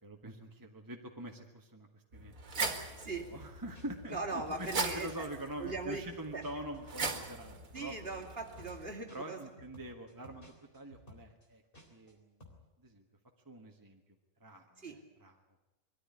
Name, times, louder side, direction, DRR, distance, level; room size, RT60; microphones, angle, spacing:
voice 1, 0.0-2.3 3.1-7.9 9.1-11.6 11.9-12.4 12.8-13.0 13.4-14.0 14.4-15.3, right 1 dB, 15° right, 2 dB, 1.5 m, -45 dB
sound 1, 2.1-8.9, right 4 dB, 70° right, 2.2 m, -40 dB
voice 2, 3.0-3.3 4.1-5.3 5.6-6.1 6.3-6.4 7.7-9.4 14.8-15.0, right 3 dB, 40° right, 1 dB, 2.8 m, -40 dB
sound 2, 3.4-3.5 3.7-6.8 7.1-12.1 12.4-12.6, left 1 dB, 35° left, 3.9 m, -56 dB
22.0 x 14.5 x 9.9 m, 1.0 s
omnidirectional pair, 1.5 m